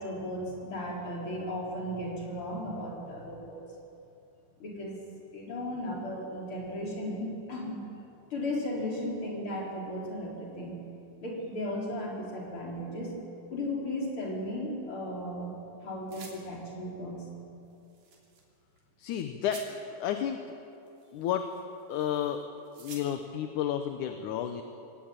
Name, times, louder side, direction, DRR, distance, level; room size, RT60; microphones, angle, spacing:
voice 1, 0.0-3.6 4.6-5.0 5.3-7.9 8.3-10.8 11.2-13.1 13.5-17.3, left 1 dB, 40° left, -2 dB, 5.0 m, -35 dB
sound 1, 16.1-16.3 17.7-18.4 18.8-18.9 19.5-19.7 20.7-22.0 22.3-23.0, right 4 dB, 65° right, 4.6 m, -49 dB
voice 2, 19.0-20.4 21.1-21.5 21.9-22.4 22.8-24.6, left 9 dB, 75° left, 7 dB, 2.3 m, -31 dB
23.5 x 18.0 x 9.0 m, 2.7 s
omnidirectional pair, 3.9 m